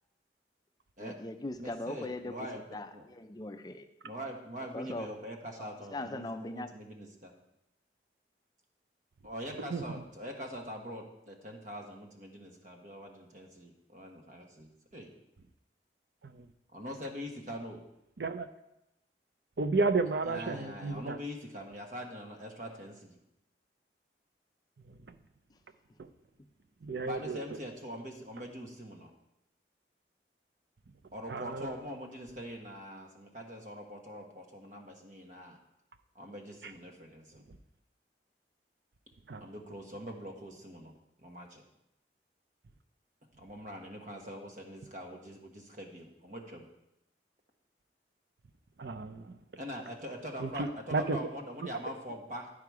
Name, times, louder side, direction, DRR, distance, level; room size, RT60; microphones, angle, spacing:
voice 1, 1.0-2.4 2.7-3.9 4.7-5.1 5.6-6.7, left 2 dB, 20° left, 8 dB, 0.4 m, -40 dB
voice 2, 1.6-2.6 2.9-3.0 4.0-7.3 9.2-15.1 16.7-17.8 20.2-23.2 27.0-29.1 31.1-35.6 36.1-37.4 39.4-40.9 41.2-41.6 43.4-46.7 49.6-52.5, equal, 45° right, 2 dB, 1.2 m, -43 dB
voice 3, 18.2-18.5 19.6-21.2 24.9-25.1 26.8-27.4 31.3-31.7 39.3-39.5 48.8-49.4 50.4-51.2, right 3 dB, 70° right, 10 dB, 0.5 m, -32 dB
11.0 x 4.9 x 4.8 m, 0.85 s
head